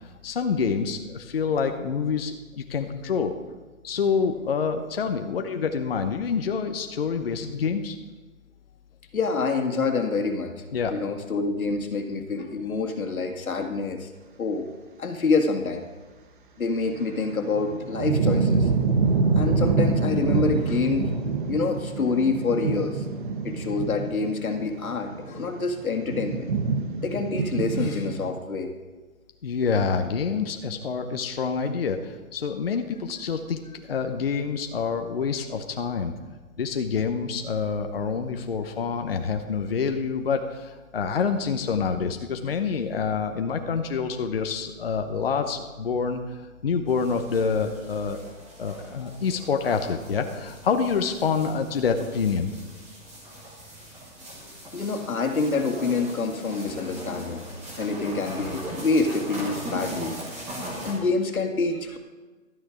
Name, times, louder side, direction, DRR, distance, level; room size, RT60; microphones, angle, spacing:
voice 1, 0.2-3.3 3.8-8.0 10.7-10.9 29.4-33.6 33.9-36.1 36.6-48.2 48.6-52.5, left 5 dB, 45° left, 6 dB, 0.9 m, -27 dB
voice 2, 9.1-10.6 10.9-14.1 14.4-14.7 15.0-15.8 16.6-18.7 19.4-21.1 21.5-23.1 23.4-26.5 27.0-28.7 54.7-57.4 57.8-60.1 60.5-62.0, left 4 dB, 90° left, 4 dB, 2.0 m, -27 dB
sound 1, 16.9-28.3, right 4 dB, 40° right, 0.9 m, -26 dB
sound 2, 46.9-60.9, right 1 dB, 5° right, 1.2 m, -39 dB
13.0 x 9.4 x 4.9 m, 1.3 s
hypercardioid pair, 170°, 41 cm